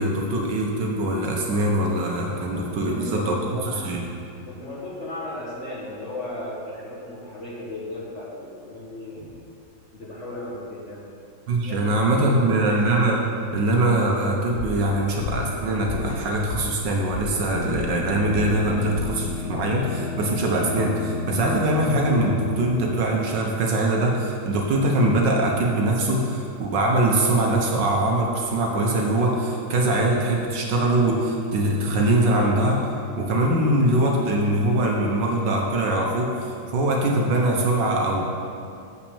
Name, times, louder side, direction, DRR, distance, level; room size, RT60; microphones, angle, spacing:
voice 1, 0.0-3.4 3.6-4.0 11.5-13.3 13.5-32.9 33.2-38.2, right 1 dB, 65° right, 0 dB, 1.5 m, -22 dB
voice 2, 2.6-3.8 4.5-9.3 9.9-11.1 11.6-12.4, left 1 dB, 40° left, -5 dB, 1.7 m, -35 dB
sound 1, 15.6-19.6, left 2 dB, 60° left, 0.9 m, -36 dB
sound 2, 17.5-24.1, left 6 dB, 85° left, 1.7 m, -33 dB
7.4 x 5.7 x 7.0 m, 2.5 s
omnidirectional pair, 2.2 m